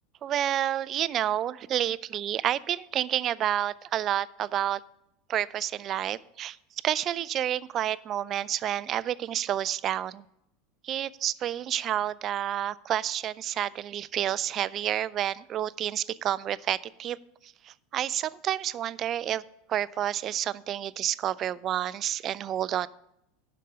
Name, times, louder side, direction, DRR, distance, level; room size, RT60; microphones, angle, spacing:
voice 1, 0.2-4.8 5.3-6.6 6.8-10.3 10.8-17.2 17.4-19.4 19.7-22.9, right 11 dB, 40° right, 20 dB, 0.3 m, -29 dB
12.0 x 5.1 x 6.6 m, 0.81 s
hypercardioid pair, 85°, 0 cm